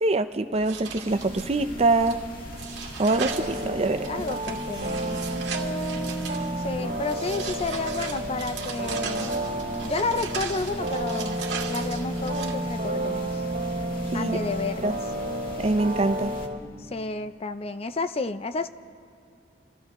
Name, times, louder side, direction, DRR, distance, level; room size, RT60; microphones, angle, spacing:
voice 1, 0.0-2.2 3.0-4.2 14.1-14.4 14.8-14.9 15.6-16.3, right 2 dB, 35° right, 9 dB, 0.6 m, -24 dB
sound 1, 0.5-12.5, right 6 dB, 85° right, 1.8 m, -38 dB
sound 2, 1.0-16.5, left 1 dB, 55° left, 1.5 m, -40 dB
sound 3, 3.1-16.6, right 1 dB, 60° right, 2.4 m, -31 dB
voice 2, 3.3-3.7 4.0-5.5 6.6-9.3 9.8-11.4 11.7-13.4 14.1-15.0 16.9-18.7, left 3 dB, 35° left, 11 dB, 0.5 m, -31 dB
27.5 x 14.5 x 3.0 m, 2.6 s
head